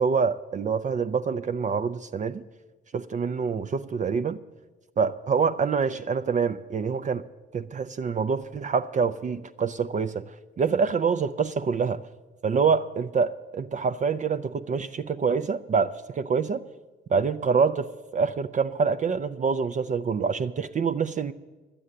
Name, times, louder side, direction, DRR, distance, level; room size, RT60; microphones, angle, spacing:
voice 1, 0.0-2.4 2.9-4.4 5.0-7.2 7.5-10.2 10.6-12.1 12.4-16.6 17.1-21.3, right 5 dB, 40° right, 9 dB, 0.5 m, -26 dB
11.5 x 7.7 x 9.7 m, 1.2 s
cardioid pair, 90°, 20 cm